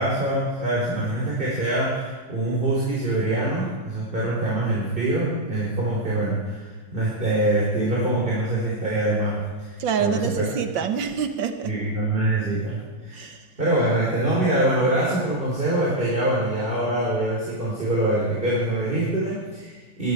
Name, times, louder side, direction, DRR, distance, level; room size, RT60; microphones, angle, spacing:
voice 1, 0.0-10.4 11.7-13.3 13.6-20.1, right 1 dB, 25° right, -5 dB, 3.7 m, -24 dB
voice 2, 9.8-11.8 13.1-13.5, right 7 dB, 85° right, 8 dB, 1.9 m, -26 dB
23.0 x 12.0 x 4.8 m, 1.3 s
omnidirectional pair, 2.0 m